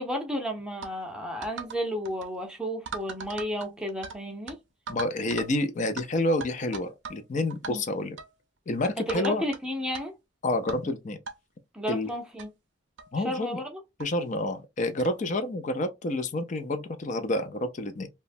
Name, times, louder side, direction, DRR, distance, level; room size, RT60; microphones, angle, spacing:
voice 1, 0.0-4.6 7.7-7.8 9.0-10.1 11.7-12.5 13.2-13.8, equal, 5° right, 0.7 m, -32 dB
sound 1, 0.8-1.0 1.4-1.8 2.1-2.3 2.9-4.2 4.5-4.6 4.9-5.5 6.0-6.1 6.4-7.2 7.5-7.7 8.2-8.3 8.8-9.6 9.9-10.0 10.7-10.9 11.3-11.4 12.1-12.2 12.4-12.5 13.0-13.1 14.0-14.1 15.0-15.2, right 5 dB, 60° right, 0.5 m, -39 dB
voice 2, 4.9-8.2 8.7-9.4 10.4-11.2 11.9-12.1 13.1-13.6 14.0-18.1, left 1 dB, 40° left, 0.4 m, -29 dB
3.0 x 2.2 x 2.5 m
head